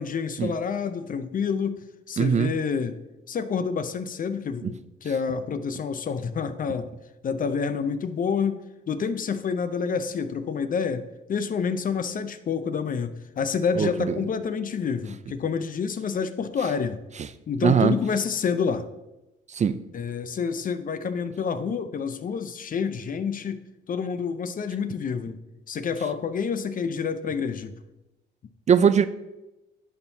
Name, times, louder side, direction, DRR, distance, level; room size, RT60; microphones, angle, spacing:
voice 1, 0.0-3.0 3.3-6.9 7.2-8.6 8.9-17.0 17.5-18.9 19.9-25.4 25.7-27.7, left 6 dB, 45° left, 11 dB, 0.6 m, -28 dB
voice 2, 2.2-2.5 4.6-4.7 13.8-13.9 17.6-17.9 19.5-19.8 28.7-29.0, right 7 dB, 35° right, 13 dB, 0.4 m, -20 dB
11.0 x 4.5 x 2.7 m, 0.97 s
cardioid pair, 90°, 20 cm